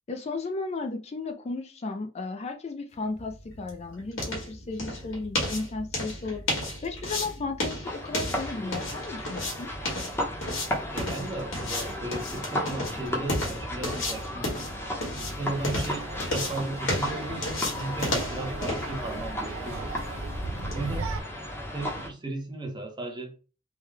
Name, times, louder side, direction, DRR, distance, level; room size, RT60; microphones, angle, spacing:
voice 1, 0.1-6.4 6.8-9.7, left 3 dB, 30° left, 0.4 m, -34 dB
sound 1, 3.0-20.8, left 1 dB, 70° left, 1.6 m, -33 dB
sound 2, 7.8-22.1, left 1 dB, 10° left, 0.9 m, -35 dB
voice 2, 10.9-14.6 15.2-20.3 20.7-21.1 21.7-23.3, right 2 dB, 20° right, 0.8 m, -36 dB
sound 3, 15.4-21.2, right 2 dB, 80° right, 0.5 m, -37 dB
3.6 x 2.2 x 3.2 m
head